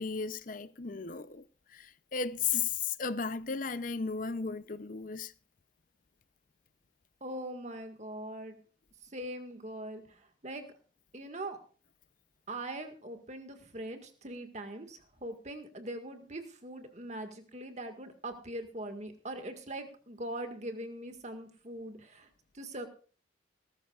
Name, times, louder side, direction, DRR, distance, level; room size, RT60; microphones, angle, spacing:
voice 1, 0.0-1.4 1.7-5.3, left 6 dB, 45° left, 0.7 m, -35 dB
voice 2, 7.2-8.6 9.1-10.7 11.1-11.6 12.5-22.3 22.5-22.9, right 1 dB, 40° right, 1.9 m, -41 dB
19.5 x 13.5 x 2.5 m
head